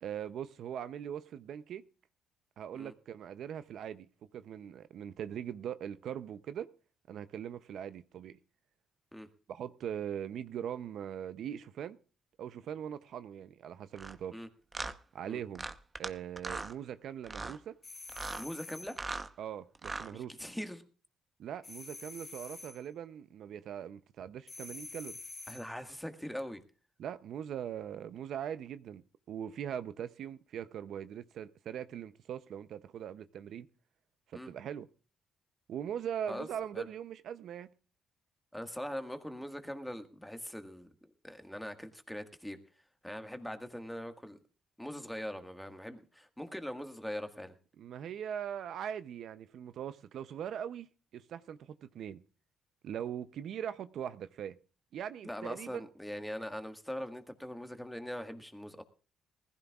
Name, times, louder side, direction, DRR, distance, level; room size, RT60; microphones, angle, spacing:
voice 1, 0.0-1.8 2.6-4.1 4.3-6.7 7.1-8.4 9.5-12.0 12.4-14.4 15.1-15.7 16.0-17.8 19.4-20.3 21.4-25.2 27.0-33.7 34.3-34.9 35.7-37.7 47.8-50.9 51.1-52.2 52.8-54.6 54.9-55.9, right 9 dB, 70° right, 0.6 m, -41 dB
sound 1, 13.9-14.1 14.7-14.9 15.5-16.1 16.4-16.7 17.2-17.6 18.1-18.4 18.9-19.3 19.7-20.1, right 3 dB, 25° right, 0.9 m, -39 dB
sound 2, 17.8-19.0 21.6-22.8 24.5-25.7, left 3 dB, 30° left, 2.6 m, -47 dB
voice 2, 18.4-19.0 20.1-20.8 25.5-26.6 34.3-34.5 36.3-36.5 36.7-36.9 38.5-40.9 41.2-42.6 43.0-44.4 44.8-47.5 55.2-58.8, equal, 5° left, 1.7 m, -41 dB
20.0 x 15.0 x 2.4 m
cardioid pair, 90°, 0 cm